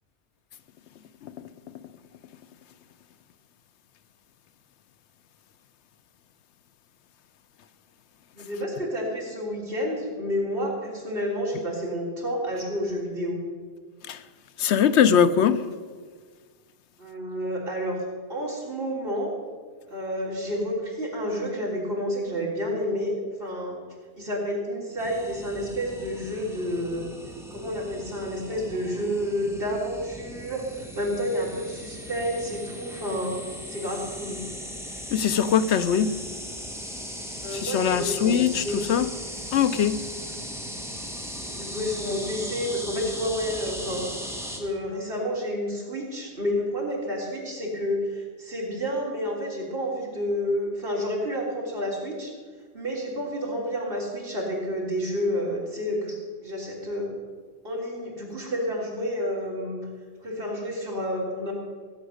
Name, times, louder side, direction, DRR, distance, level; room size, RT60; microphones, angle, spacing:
voice 1, 8.3-13.4 17.0-18.0 18.3-19.3 19.9-23.1 23.4-23.8 24.2-27.1 27.5-33.4 33.7-34.4 37.4-38.8 41.4-44.0 44.6-52.3 52.7-56.2 56.4-57.1 57.6-59.8 60.2-61.5, equal, 55° right, -4 dB, 3.7 m, -30 dB
voice 2, 14.6-15.6 35.1-36.2 37.5-39.1 39.5-40.0, left 8 dB, 85° left, 13 dB, 1.0 m, -22 dB
sound 1, 25.0-44.6, equal, ahead, 1.8 m, -38 dB
17.0 x 8.0 x 6.4 m, 1.5 s
omnidirectional pair, 1.1 m